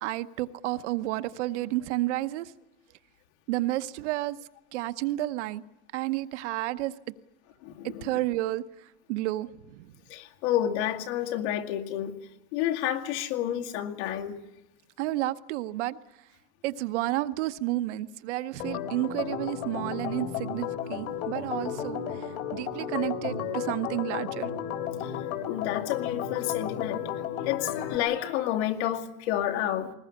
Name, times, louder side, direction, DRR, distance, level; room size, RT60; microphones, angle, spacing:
voice 1, 0.0-2.5 3.5-4.4 4.7-5.6 5.9-6.9 7.8-8.6 9.1-9.9 15.0-16.0 16.6-24.5, right 16 dB, 60° right, 1.0 m, -31 dB
voice 2, 7.6-8.2 10.1-12.1 12.5-14.4 25.0-25.2 25.5-29.9, left 11 dB, 55° left, 2.4 m, -30 dB
Organ, 18.6-28.0, left 8 dB, 80° left, 3.9 m, -33 dB
20.5 x 20.0 x 9.9 m
supercardioid pair, 170°, 41 cm